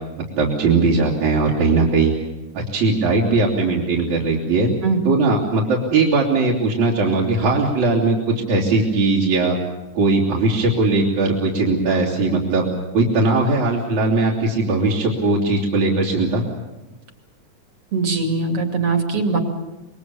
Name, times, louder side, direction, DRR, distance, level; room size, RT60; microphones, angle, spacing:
voice 1, 0.3-2.1 2.5-4.7 5.0-9.6 9.9-12.7 12.9-16.4, right 3 dB, 70° right, -4 dB, 4.3 m, -19 dB
voice 2, 17.9-19.4, right 4 dB, 50° right, 4 dB, 3.4 m, -21 dB
26.5 x 22.0 x 7.1 m, 1.0 s
omnidirectional pair, 3.4 m